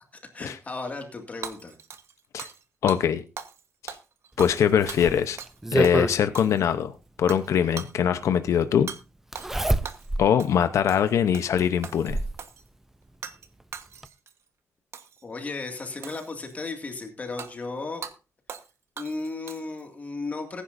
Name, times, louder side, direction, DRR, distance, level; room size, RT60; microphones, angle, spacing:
voice 1, 0.3-1.7 15.2-18.1 19.0-20.6, left 3 dB, 30° left, 2.1 m, -35 dB
Hammer / Shatter, 1.4-2.6 2.9-3.0 3.4-3.6 3.9-5.6 5.8-6.0 6.3-6.8 7.3-7.5 7.8-7.9 8.9-9.0 9.3-10.1 10.4-10.6 10.9-11.5 11.8-12.6 13.2-13.5 13.7-14.3 14.9-15.2 16.0-16.6 17.4-17.5 18.0-18.1 18.5-18.7 19.0-19.8, right 7 dB, 60° right, 1.2 m, -40 dB
voice 2, 2.8-3.2 3.8-3.9 4.4-5.4 5.7-6.9 7.2-8.9 10.2-12.2, left 8 dB, 75° left, 0.8 m, -22 dB
Zipper (clothing), 4.4-6.2 7.6-7.7 9.3-10.3 10.8-10.9 11.6-12.4 13.6-13.7 14.0-14.1, right 1 dB, 5° right, 0.6 m, -27 dB
20.5 x 10.0 x 2.6 m
wide cardioid pair, 160°, 5 cm